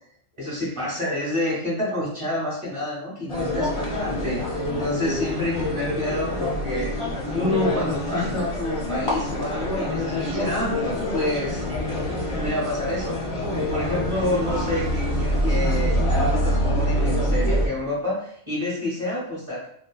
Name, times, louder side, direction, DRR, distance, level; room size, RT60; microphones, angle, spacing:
voice 1, 0.4-6.9 7.3-10.8 11.1-11.7 12.3-13.2 13.5-19.7, left 1 dB, 25° right, -7 dB, 1.2 m, -28 dB
sound 1, 3.3-17.7, equal, 30° left, 0.7 m, -25 dB
3.7 x 2.2 x 2.2 m, 0.67 s
omnidirectional pair, 1.4 m